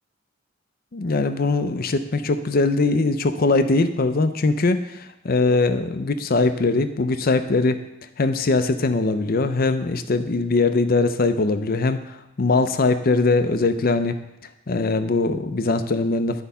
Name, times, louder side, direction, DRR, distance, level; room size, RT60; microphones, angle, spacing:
voice 1, 0.9-7.8 8.2-14.2 14.7-16.4, left 3 dB, 50° left, 10 dB, 0.6 m, -21 dB
10.5 x 4.7 x 5.6 m, 0.92 s
head